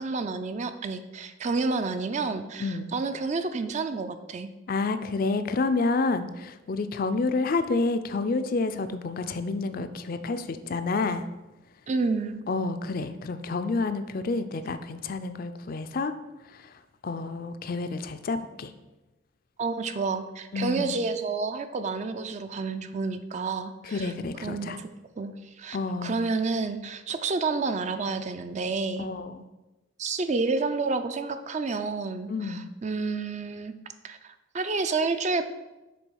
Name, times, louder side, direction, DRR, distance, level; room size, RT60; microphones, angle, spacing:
voice 1, 0.0-4.5 11.9-12.4 19.6-24.1 24.4-24.9 25.2-29.1 30.0-33.7 34.0-35.4, right 4 dB, 35° right, 9 dB, 0.4 m, -30 dB
voice 2, 2.6-2.9 4.7-11.3 12.5-16.1 16.6-16.7 17.0-18.7 20.5-20.9 23.9-24.8 25.7-26.2 29.0-29.5 32.3-32.7, left 3 dB, 45° left, 10 dB, 0.4 m, -29 dB
6.8 x 3.7 x 6.2 m, 1.0 s
head